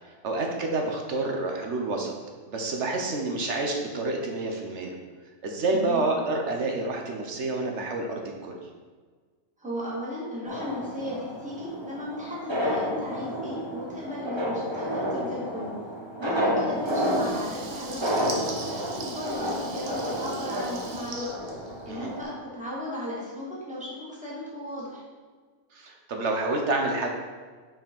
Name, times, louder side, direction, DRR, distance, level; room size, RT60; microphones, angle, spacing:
voice 1, 0.2-2.1 2.5-4.9 5.4-8.6 16.2-16.4 21.9-22.1 25.7-27.1, right 2 dB, 55° right, 2 dB, 1.0 m, -28 dB
voice 2, 5.7-6.1 9.6-15.8 16.2-21.4 21.8-25.0, left 1 dB, 5° right, -7 dB, 1.9 m, -35 dB
sound 1, 10.5-22.2, equal, 20° right, 0.9 m, -31 dB
Water tap faucet / Liquid, 16.8-22.3, right 3 dB, 75° right, 1.4 m, -41 dB
5.7 x 4.9 x 5.3 m, 1.5 s
omnidirectional pair, 1.6 m